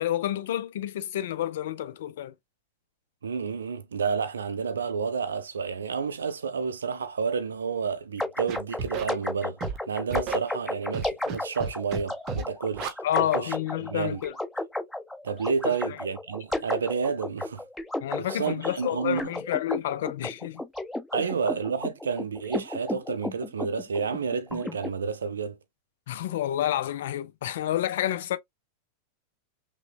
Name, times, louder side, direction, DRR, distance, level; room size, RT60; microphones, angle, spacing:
voice 1, 0.0-2.3 13.0-14.3 15.7-16.0 18.0-20.6 21.2-21.3 26.1-28.4, left 12 dB, 55° left, 0.4 m, -29 dB
voice 2, 3.2-9.6 9.9-13.6 13.9-14.2 15.2-17.6 18.2-19.3 21.1-25.6, right 5 dB, 70° right, 0.5 m, -30 dB
sound 1, 8.2-24.9, left 1 dB, 5° left, 1.0 m, -33 dB
Scratching (performance technique), 8.5-9.0 9.6-9.8 10.1-10.4 10.9-11.4 11.6-12.0 12.3-12.4 12.7-12.9, right 5 dB, 35° right, 0.9 m, -32 dB
5.7 x 2.1 x 2.3 m
figure-of-eight pair, 90°, 0 cm